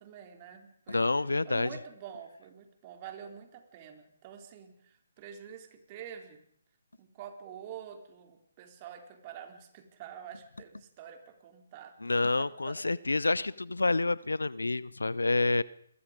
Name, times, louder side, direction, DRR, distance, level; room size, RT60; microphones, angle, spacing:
voice 1, 0.0-1.0 1.4-6.4 7.0-12.0 12.4-12.9, right 8 dB, 30° right, 5 dB, 3.9 m, -47 dB
voice 2, 0.9-1.7 12.0-15.6, left 3 dB, 80° left, 21 dB, 0.8 m, -28 dB
29.0 x 23.0 x 5.2 m, 0.68 s
figure-of-eight pair, 145°, 0 cm